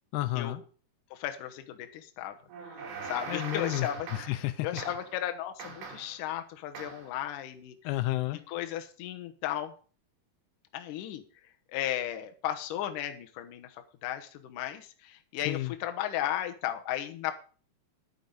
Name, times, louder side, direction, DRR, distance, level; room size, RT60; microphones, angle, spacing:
voice 1, 0.1-0.6 3.3-4.8 7.8-8.4 15.5-15.7, left 16 dB, 85° left, 12 dB, 2.7 m, -31 dB
voice 2, 1.1-2.4 2.7-4.1 4.6-7.9 8.5-9.7 10.7-11.2 11.7-17.3, left 11 dB, 65° left, 6 dB, 2.3 m, -35 dB
sound 1, 2.5-4.5 4.8-5.2 5.6-6.2 6.8-7.1, right 5 dB, 90° right, 4.6 m, -41 dB
10.5 x 9.3 x 5.4 m, 0.40 s
omnidirectional pair, 4.6 m